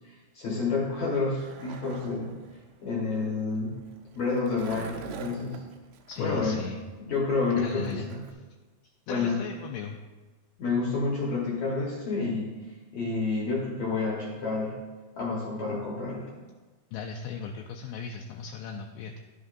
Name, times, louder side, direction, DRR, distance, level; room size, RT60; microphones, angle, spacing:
voice 1, 0.3-2.4 2.8-3.7 4.2-5.6 6.2-6.7 7.0-8.2 9.1-9.4 10.6-12.6 12.9-14.8 15.2-16.3, left 4 dB, 65° left, -4 dB, 1.9 m, -29 dB
Skateboard, 0.9-8.3, right 6 dB, 85° right, 2.8 m, -46 dB
voice 2, 6.1-6.8 7.6-8.4 9.1-10.0 16.9-19.2, left 6 dB, 85° left, 2 dB, 2.3 m, -37 dB
12.5 x 7.9 x 2.6 m, 1.3 s
omnidirectional pair, 4.9 m